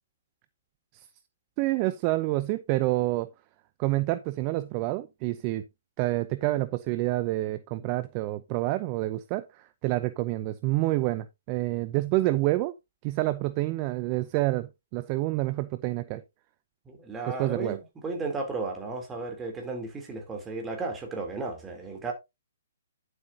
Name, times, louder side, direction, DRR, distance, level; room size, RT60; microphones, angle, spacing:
voice 1, 1.6-3.3 3.8-5.6 6.0-12.8 13.0-16.2 17.4-17.8, right 18 dB, 35° right, 0.7 m, -28 dB
voice 2, 16.8-22.1, right 3 dB, 15° right, 3.3 m, -34 dB
11.0 x 7.9 x 2.8 m
figure-of-eight pair, 130°, 0 cm